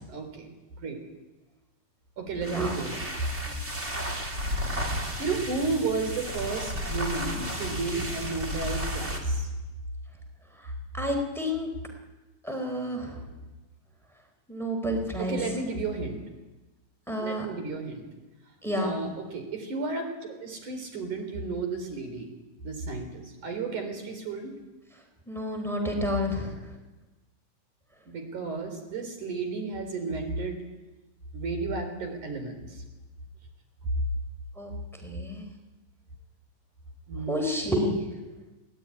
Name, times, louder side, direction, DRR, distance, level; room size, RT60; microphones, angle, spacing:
voice 1, 0.1-0.5 0.8-1.0 2.2-3.1 3.4-3.7 5.2-9.5 15.2-16.2 17.2-18.0 18.8-22.3 22.6-24.5 28.1-30.6 31.3-32.8 37.1-37.9, right 3 dB, 85° right, 5 dB, 5.4 m, -33 dB
sound 1, 2.3-9.3, equal, 20° right, 3.2 m, -33 dB
voice 2, 2.4-2.8 10.9-11.7 12.4-13.2 14.5-15.4 17.1-17.5 18.6-18.9 25.3-26.6 34.6-34.7 35.0-35.5 37.3-38.2, left 1 dB, ahead, 3 dB, 3.7 m, -30 dB
21.5 x 18.0 x 9.8 m, 1.1 s
omnidirectional pair, 3.4 m